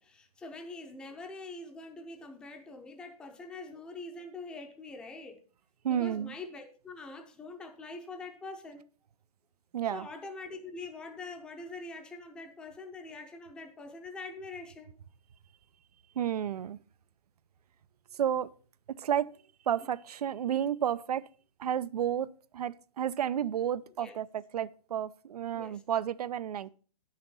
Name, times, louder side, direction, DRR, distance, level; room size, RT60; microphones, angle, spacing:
voice 1, 0.0-5.4 5.9-8.8 9.9-14.9 24.0-24.1 25.5-25.8, left 3 dB, 5° left, 0.6 m, -44 dB
voice 2, 5.8-6.3 9.7-10.1 16.2-16.8 18.2-18.5 19.0-19.3 19.7-21.3 21.6-26.7, right 9 dB, 85° right, 0.6 m, -31 dB
8.9 x 6.4 x 5.3 m
hypercardioid pair, 165°, 19 cm